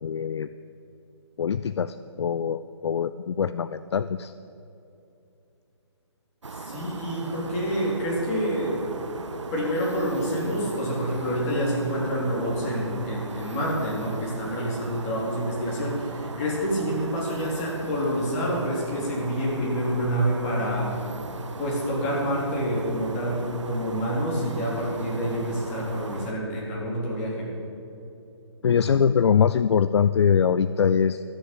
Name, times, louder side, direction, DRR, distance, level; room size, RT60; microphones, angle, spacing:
voice 1, 0.0-0.5 1.4-4.3 28.6-31.2, left 7 dB, 65° left, 13 dB, 0.4 m, -23 dB
sound 1, 6.4-26.3, right 4 dB, 85° right, 0.9 m, -38 dB
voice 2, 6.5-8.8 9.3-20.9 21.6-27.5, equal, 30° left, -4 dB, 3.8 m, -27 dB
13.0 x 7.6 x 8.5 m, 2.8 s
figure-of-eight pair, 145°, 15 cm